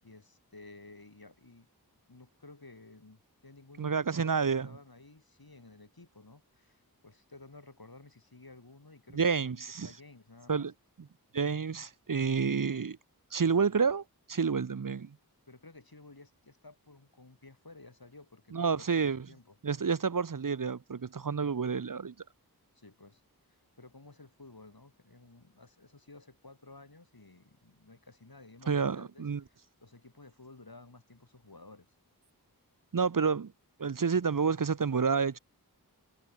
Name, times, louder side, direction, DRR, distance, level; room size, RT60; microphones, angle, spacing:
voice 1, 0.0-1.7 2.1-9.6 9.8-10.7 15.5-19.6 22.7-23.2 23.5-31.9, left 3 dB, 65° left, 5.7 m, -54 dB
voice 2, 3.8-4.7 9.1-9.9 10.5-10.7 11.3-13.0 13.3-15.1 18.5-19.2 19.6-22.1 28.7-29.4 32.9-33.5 33.8-35.4, right 5 dB, 55° right, 0.8 m, -29 dB
wide cardioid pair, 45°, 38 cm